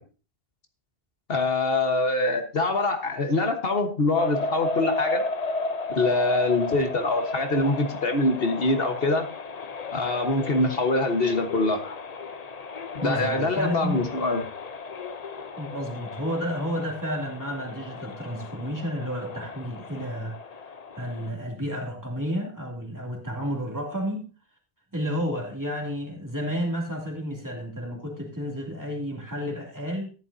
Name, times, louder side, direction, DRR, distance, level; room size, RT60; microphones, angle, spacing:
voice 1, 1.3-5.2 5.9-9.3 9.9-11.8 13.0-14.4, left 2 dB, 60° left, 5 dB, 1.6 m, -24 dB
sound 1, 4.2-21.3, left 3 dB, 40° left, 0.8 m, -34 dB
voice 2, 13.0-14.0 15.6-24.3 24.9-30.1, equal, 15° right, -1 dB, 2.8 m, -31 dB
14.0 x 11.0 x 2.7 m, 0.35 s
omnidirectional pair, 1.1 m